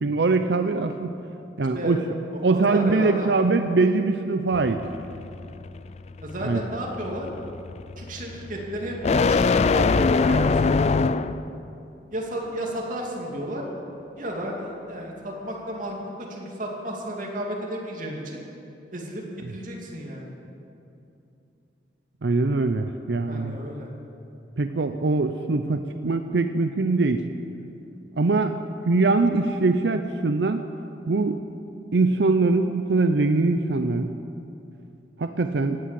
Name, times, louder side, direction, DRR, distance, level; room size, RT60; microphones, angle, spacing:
voice 1, 0.0-1.1 1.6-2.0 2.4-4.8 6.4-6.6 19.4-19.5 22.2-23.6 24.6-27.2 28.2-28.6 28.8-30.6 31.1-31.4 31.9-34.1 35.2-35.8, right 3 dB, 75° right, 8 dB, 0.6 m, -22 dB
voice 2, 2.5-3.3 6.2-7.3 8.0-11.2 12.1-13.6 14.2-16.0 16.3-18.4 18.9-20.3 23.3-23.9, right 1 dB, 50° right, -1 dB, 2.6 m, -33 dB
sound 1, 4.5-11.5, left 4 dB, 40° left, 0.4 m, -23 dB
17.0 x 10.0 x 7.6 m, 2.7 s
head